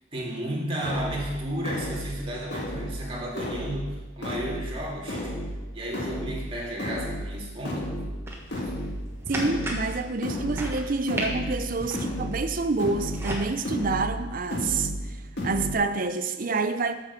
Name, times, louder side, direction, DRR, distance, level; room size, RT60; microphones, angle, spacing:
voice 1, 0.1-5.3 5.7-8.0, right 1 dB, 30° right, 2.1 m, -33 dB
sound 1, 0.8-15.7, equal, 65° left, 1.8 m, -33 dB
sound 2, 8.3-13.5, right 1 dB, 15° right, 1.4 m, -37 dB
voice 2, 9.3-16.9, right 3 dB, 45° right, 0.6 m, -28 dB
8.4 x 5.9 x 6.7 m
head